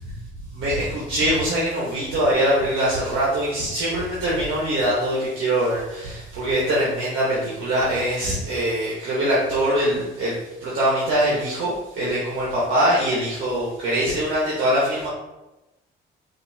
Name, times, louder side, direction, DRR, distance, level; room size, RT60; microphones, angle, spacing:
voice 1, 0.5-15.1, right 1 dB, 80° right, -7 dB, 1.1 m, -23 dB
5.2 x 2.6 x 2.7 m, 1.0 s
cardioid pair, 90°, 20 cm